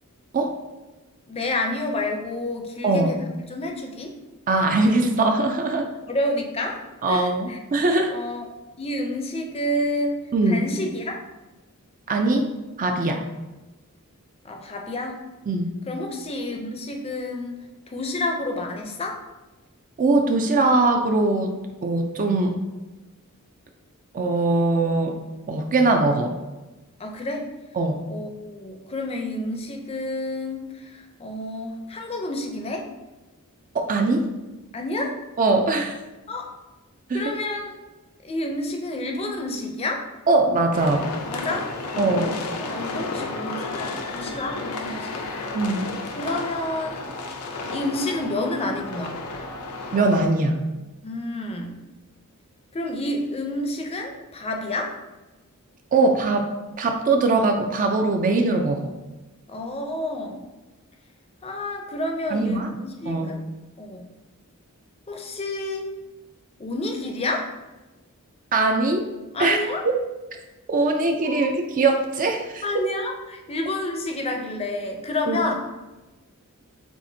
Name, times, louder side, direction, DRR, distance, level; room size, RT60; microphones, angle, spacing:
voice 1, 1.3-3.2 3.5-4.2 6.1-6.8 7.1-7.6 8.1-8.5 8.8-10.2 10.5-11.2 14.4-15.2 15.9-17.6 17.9-19.2 27.0-27.5 28.1-32.9 34.7-35.2 36.3-36.5 37.1-37.8 38.2-40.0 41.3-45.3 46.2-47.1 47.7-49.2 51.0-51.8 52.7-55.0 59.5-60.5 61.4-63.4 63.8-64.1 65.1-65.9 66.6-67.5 69.3-69.8 71.3-71.5 72.6-75.6, left 1 dB, 25° left, 2 dB, 0.5 m, -29 dB
voice 2, 4.5-5.9 7.0-8.1 10.3-10.6 12.1-12.5 12.8-13.2 15.5-15.7 20.0-21.5 21.8-22.6 24.1-25.2 25.5-26.3 27.8-28.0 33.7-34.3 35.4-35.9 37.1-37.2 40.3-41.0 42.0-42.3 45.5-45.8 49.9-50.6 55.9-56.5 56.8-58.9 62.3-62.7 63.1-63.3 68.5-69.1 69.4-69.6 70.7-72.6 75.3-75.4, right 2 dB, 40° right, 4 dB, 0.4 m, -21 dB
sound 1, 40.7-50.3, left 3 dB, 85° left, 0.6 m, -32 dB
7.0 x 2.5 x 2.7 m, 1.1 s
head